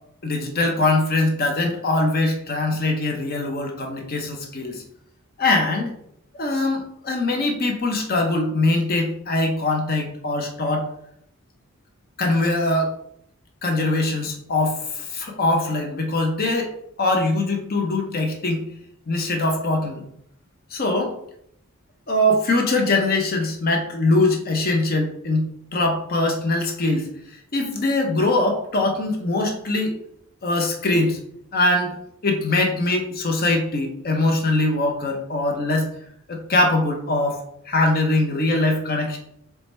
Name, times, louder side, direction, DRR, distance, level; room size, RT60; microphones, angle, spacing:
voice 1, 0.2-4.8 5.4-5.9 6.3-10.9 12.2-12.9 13.6-16.7 17.0-18.6 19.1-20.0 20.7-21.2 22.1-27.1 27.5-29.9 30.4-31.2 31.5-32.0 32.2-35.9 36.3-37.4 37.7-39.2, left 2 dB, 45° left, 3 dB, 0.8 m, -22 dB
4.6 x 3.2 x 3.3 m, 0.71 s
head